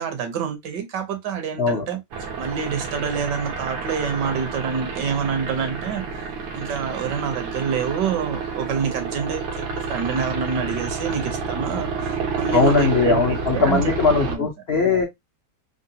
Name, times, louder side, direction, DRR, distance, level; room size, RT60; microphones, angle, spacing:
voice 1, 0.0-2.0 2.4-6.0 6.5-13.2 13.5-14.5, right 6 dB, 70° right, 1.2 m, -27 dB
sound 1, 2.1-14.4, right 5 dB, 85° right, 1.6 m, -29 dB
voice 2, 12.5-15.0, left 4 dB, 70° left, 0.5 m, -19 dB
3.7 x 2.2 x 2.6 m
omnidirectional pair, 2.1 m